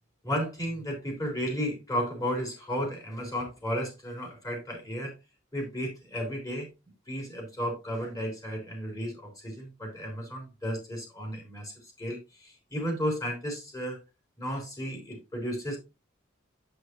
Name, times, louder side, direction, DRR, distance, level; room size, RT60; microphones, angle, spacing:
voice 1, 0.2-5.1 5.5-6.7 7.1-14.0 14.4-15.8, equal, 20° left, 1 dB, 3.5 m, -33 dB
8.4 x 7.9 x 2.6 m, 0.25 s
head